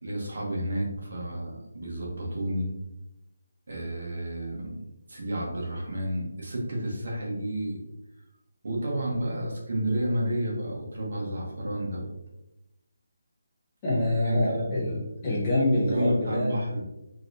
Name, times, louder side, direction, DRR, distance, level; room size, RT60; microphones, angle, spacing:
voice 1, 0.0-2.7 3.7-4.8 5.1-7.8 8.6-12.0 14.2-14.6 15.7-16.8, right 1 dB, 50° right, -2 dB, 1.2 m, -31 dB
voice 2, 13.8-16.5, left 1 dB, 15° left, -9 dB, 1.2 m, -26 dB
5.1 x 3.0 x 2.7 m, 0.93 s
hypercardioid pair, 180°, 0 cm